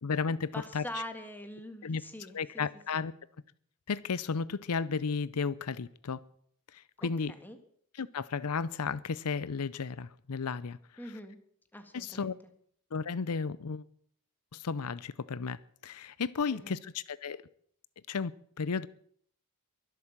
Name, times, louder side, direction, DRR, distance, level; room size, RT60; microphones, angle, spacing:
voice 1, 0.0-1.0 1.8-2.0 2.3-3.1 3.9-6.2 6.7-7.3 8.0-10.8 11.9-12.3 12.9-13.8 14.5-17.4 18.1-18.9, left 5 dB, 85° left, 0.6 m, -34 dB
voice 2, 0.5-2.4 2.9-3.0 7.0-7.6 11.0-11.4 11.7-12.3 16.5-16.8, left 1 dB, 10° left, 1.9 m, -43 dB
22.5 x 8.4 x 7.4 m
head